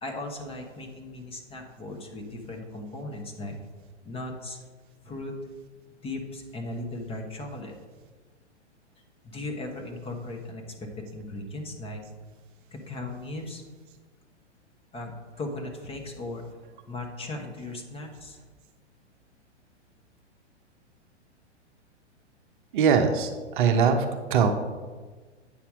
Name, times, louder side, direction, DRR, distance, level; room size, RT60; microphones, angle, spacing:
voice 1, 0.0-3.6 4.0-4.6 5.0-5.3 6.0-7.8 9.2-12.0 12.7-13.6 14.9-16.4 16.9-18.4, left 2 dB, 15° left, 2 dB, 1.1 m, -37 dB
voice 2, 22.7-23.3 23.6-24.5, right 6 dB, 45° right, 5 dB, 0.9 m, -21 dB
8.7 x 5.7 x 4.9 m, 1.4 s
figure-of-eight pair, 110°, 36 cm